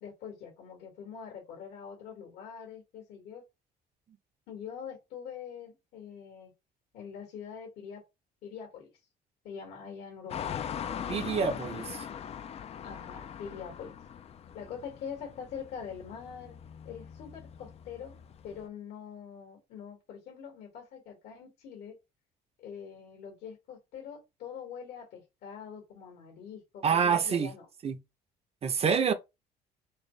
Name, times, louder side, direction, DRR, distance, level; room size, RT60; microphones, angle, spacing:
voice 1, 0.0-3.4 4.5-6.5 6.9-8.0 8.4-8.9 9.4-10.5 12.8-14.0 14.5-16.6 16.8-18.2 18.4-22.0 22.6-27.7, left 7 dB, 80° left, 2.1 m, -44 dB
sound 1, 10.3-18.6, left 8 dB, 40° left, 0.3 m, -41 dB
voice 2, 11.1-12.1 26.8-27.5 27.8-28.0 28.6-29.1, right 6 dB, 35° right, 0.6 m, -27 dB
4.6 x 2.4 x 3.2 m
cardioid pair, 110°, 17 cm